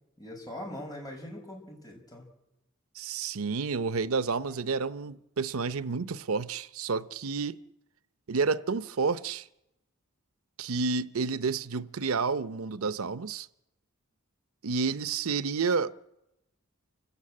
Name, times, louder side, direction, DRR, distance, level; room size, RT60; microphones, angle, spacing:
voice 1, 0.2-2.3, left 1 dB, 20° left, 5.5 m, -42 dB
voice 2, 2.9-7.6 8.3-9.5 10.6-13.5 14.6-15.9, right 4 dB, 90° right, 0.7 m, -30 dB
28.5 x 15.0 x 8.7 m
head